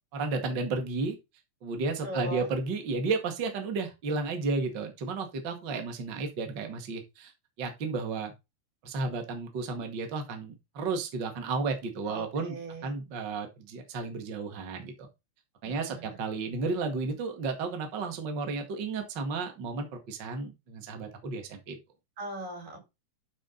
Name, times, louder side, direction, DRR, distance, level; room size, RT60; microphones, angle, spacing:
voice 1, 0.1-1.2 1.6-7.3 7.6-8.3 8.8-12.6 12.8-15.1 15.6-21.8, right 4 dB, 40° right, 2.1 m, -33 dB
voice 2, 2.0-2.5 12.1-12.9 15.6-16.1 22.2-22.8, right 1 dB, 85° right, 6.5 m, -39 dB
12.5 x 5.0 x 3.9 m
omnidirectional pair, 3.8 m